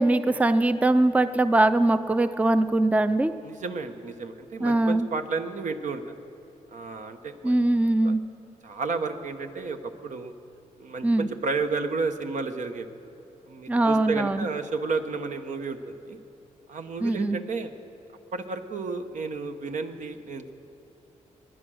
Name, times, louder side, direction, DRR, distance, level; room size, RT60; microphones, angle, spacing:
voice 1, 0.0-3.3 4.6-5.1 7.4-8.2 11.0-11.3 13.7-14.5 17.0-17.4, right 2 dB, 10° right, 11 dB, 0.4 m, -22 dB
voice 2, 3.4-6.1 6.7-7.6 8.0-8.1 8.6-10.3 10.8-12.9 13.5-16.2 16.7-17.7 18.3-20.5, right 4 dB, 70° right, 7 dB, 1.0 m, -32 dB
21.0 x 9.0 x 6.3 m, 3.0 s
cardioid pair, 80°, 13 cm